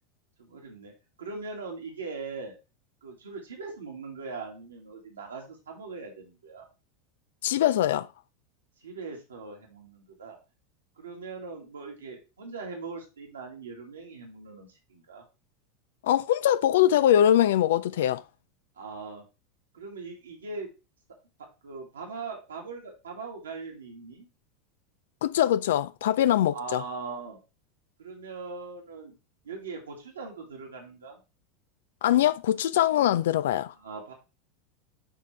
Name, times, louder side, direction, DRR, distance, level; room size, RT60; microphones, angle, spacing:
voice 1, 0.4-0.9 1.2-2.6 3.0-6.7 8.8-10.4 11.0-15.2 18.8-19.3 19.7-20.7 21.6-24.3 26.5-27.4 28.0-29.2 29.4-31.2 33.8-34.1, right 4 dB, 85° right, 2.0 m, -40 dB
voice 2, 7.4-8.1 16.0-18.2 25.2-26.8 32.0-33.7, left 11 dB, 70° left, 0.3 m, -22 dB
9.7 x 3.7 x 3.2 m
hypercardioid pair, 85°, 0 cm